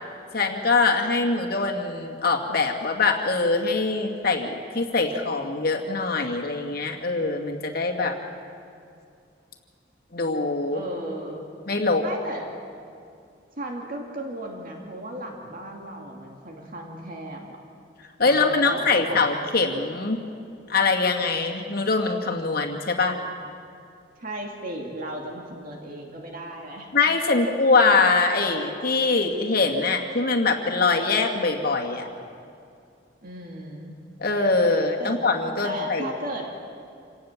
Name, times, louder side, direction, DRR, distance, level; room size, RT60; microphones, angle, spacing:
voice 1, 0.3-8.2 10.1-10.8 11.7-12.0 18.2-20.2 20.7-23.2 26.9-32.1 34.2-36.1, left 3 dB, 60° left, 2 dB, 2.3 m, -23 dB
voice 2, 10.7-11.5 12.0-12.5 13.6-17.6 18.2-19.3 24.2-26.9 27.8-28.0 33.2-34.0 35.0-35.2 35.6-36.5, right 1 dB, 50° right, 1 dB, 2.6 m, -35 dB
27.5 x 18.0 x 7.5 m, 2.5 s
head